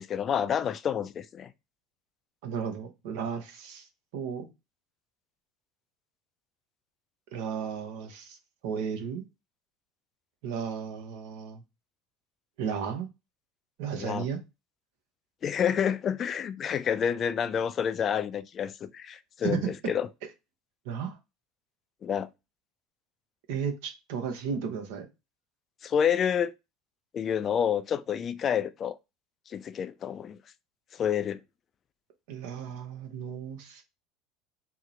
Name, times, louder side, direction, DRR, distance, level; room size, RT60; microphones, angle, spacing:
voice 1, 0.0-1.5 14.0-14.3 15.4-20.1 22.0-22.3 25.8-26.5 27.1-29.0 29.5-30.4 31.0-31.4, left 8 dB, 40° left, 0.3 m, -28 dB
voice 2, 2.4-3.9 4.1-4.5 7.3-8.4 8.6-9.2 10.4-11.6 12.6-13.1 13.8-14.4 19.4-19.7 20.8-21.2 23.5-25.1 32.3-33.8, right 7 dB, 75° right, 0.8 m, -34 dB
2.8 x 2.1 x 3.7 m
supercardioid pair, 90°, 0 cm